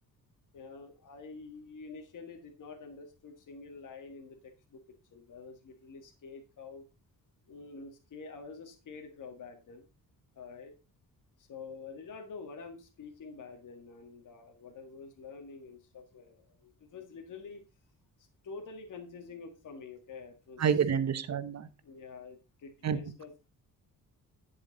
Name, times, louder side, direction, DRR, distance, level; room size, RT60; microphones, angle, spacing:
voice 1, 0.5-4.8 5.1-6.8 7.5-9.8 10.3-10.7 11.4-17.6 18.2-20.8 21.8-23.5, left 4 dB, 60° left, 3 dB, 1.7 m, -47 dB
voice 2, 20.6-21.7 22.8-23.0, right 7 dB, 50° right, 12 dB, 1.1 m, -28 dB
10.0 x 7.5 x 4.0 m, 0.29 s
cardioid pair, 130°, 35 cm